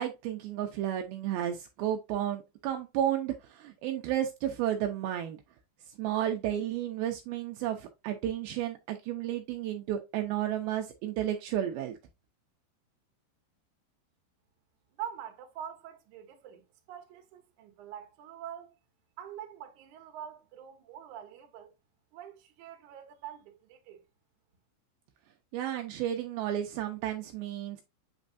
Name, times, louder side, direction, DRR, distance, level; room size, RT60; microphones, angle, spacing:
voice 1, 0.0-5.4 6.0-11.9 25.5-27.8, right 11 dB, 85° right, 2.1 m, -32 dB
voice 2, 15.0-18.8 19.2-21.7 22.1-24.0, right 9 dB, 70° right, 1.9 m, -45 dB
8.2 x 4.4 x 2.6 m
omnidirectional pair, 5.3 m